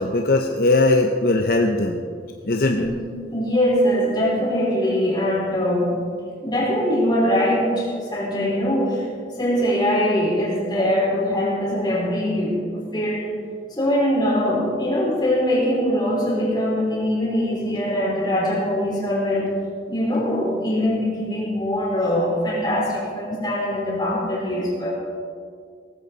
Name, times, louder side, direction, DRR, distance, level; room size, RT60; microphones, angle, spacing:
voice 1, 0.0-2.0 2.4-2.9, left 2 dB, 55° left, 4 dB, 0.8 m, -19 dB
voice 2, 3.3-6.0 6.4-13.3 13.7-19.5 19.9-24.9, equal, 25° left, -4 dB, 4.5 m, -22 dB
18.0 x 14.5 x 4.1 m, 2.2 s
head